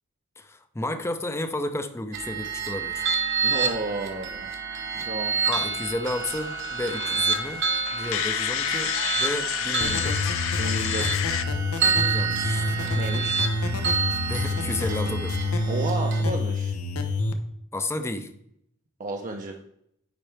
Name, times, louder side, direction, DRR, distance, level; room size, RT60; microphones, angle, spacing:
voice 1, 0.4-3.1 5.5-7.6 7.9-10.3 12.1-12.7 14.3-15.3 17.7-18.3, left 1 dB, 10° left, 9 dB, 0.5 m, -32 dB
sound 1, 2.1-16.2, right 5 dB, 60° right, 1.1 m, -29 dB
voice 2, 3.4-4.5 4.9-5.4 5.7-5.8 10.6-11.3 12.9-13.5 15.7-16.7 19.0-19.6, right 2 dB, 35° right, 2 dB, 0.6 m, -32 dB
sound 2, 6.0-11.4, left 10 dB, 65° left, 0.4 m, -30 dB
sound 3, 9.8-17.3, left 2 dB, 90° left, 0.8 m, -27 dB
10.0 x 4.1 x 3.3 m, 0.73 s
head